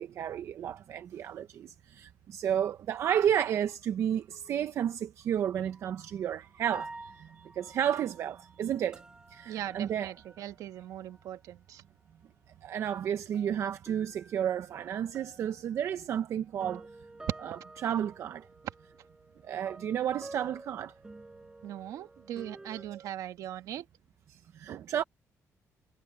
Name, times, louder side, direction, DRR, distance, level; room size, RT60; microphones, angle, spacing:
voice 1, 0.0-9.0 9.3-10.1 12.6-16.9 17.8-18.5 19.5-20.9 22.7-23.0 24.3-25.0, right 9 dB, 55° right, 0.7 m, -32 dB
sound 1, 5.7-6.1 6.7-11.6 11.9-12.7 13.1-22.8, right 2 dB, 10° right, 5.7 m, -51 dB
voice 2, 9.4-11.8 17.3-17.4 21.6-23.9, right 12 dB, 85° right, 1.4 m, -39 dB
cardioid pair, 180°, 6 cm